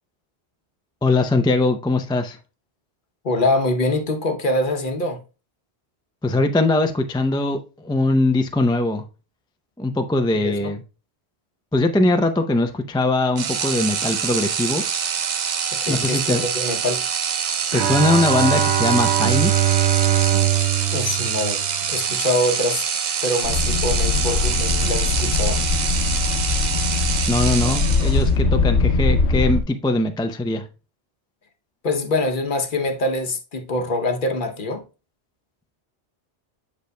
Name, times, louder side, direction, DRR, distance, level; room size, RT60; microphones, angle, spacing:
voice 1, 1.0-2.4 6.2-9.0 9.8-10.8 11.7-14.8 15.9-16.4 17.7-19.5 27.3-30.6, left 2 dB, 5° left, 0.3 m, -21 dB
voice 2, 3.2-5.2 10.3-10.8 15.7-17.0 20.9-21.6 21.9-22.8 23.2-25.6 31.8-34.8, left 2 dB, 50° left, 1.0 m, -24 dB
sound 1, 13.4-28.4, right 7 dB, 50° right, 0.7 m, -25 dB
Bowed string instrument, 17.7-22.2, right 11 dB, 80° right, 1.0 m, -21 dB
sound 2, 23.4-29.6, left 4 dB, 85° left, 1.1 m, -21 dB
8.0 x 6.7 x 2.2 m
omnidirectional pair, 1.1 m